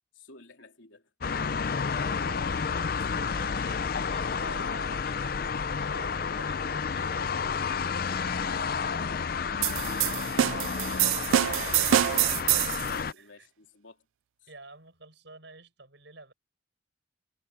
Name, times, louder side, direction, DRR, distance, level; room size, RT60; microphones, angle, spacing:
voice 1, 0.1-1.1 3.0-3.1 10.1-10.3 11.3-14.1 14.4-14.5, left 3 dB, 75° left, 3.4 m, -52 dB
sound 1, 1.2-13.1, left 5 dB, 50° left, 0.5 m, -31 dB
voice 2, 1.4-10.2 13.2-13.5 14.5-16.3, right 3 dB, 65° right, 6.3 m, -50 dB
sound 2, 9.6-12.9, right 12 dB, 85° right, 0.3 m, -25 dB
head